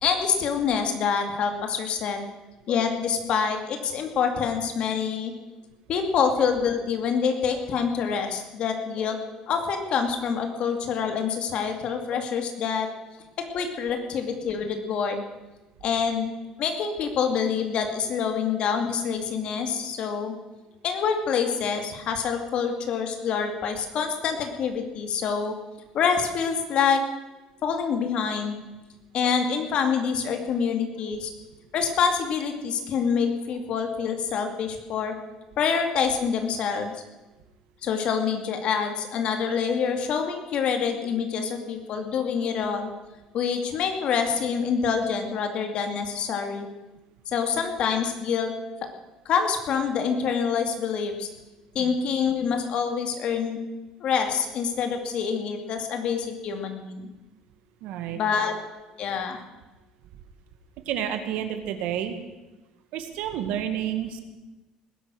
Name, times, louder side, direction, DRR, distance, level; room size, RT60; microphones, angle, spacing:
voice 1, 0.0-2.2 2.7-5.3 5.9-9.2 9.5-12.9 13.4-15.2 15.8-16.3 16.6-20.3 20.8-25.5 25.9-27.0 27.6-28.6 29.1-31.3 31.7-35.1 35.6-37.0 37.8-42.9 43.3-46.7 47.3-48.5 49.3-51.3 51.7-53.6 54.0-57.1 58.1-58.5 59.0-59.4, left 6 dB, 50° left, 5 dB, 2.4 m, -26 dB
voice 2, 57.8-58.2 60.9-62.2 62.9-64.2, right 10 dB, 75° right, 8 dB, 2.0 m, -30 dB
19.5 x 11.0 x 6.4 m, 1.1 s
cardioid pair, 150°, 2 cm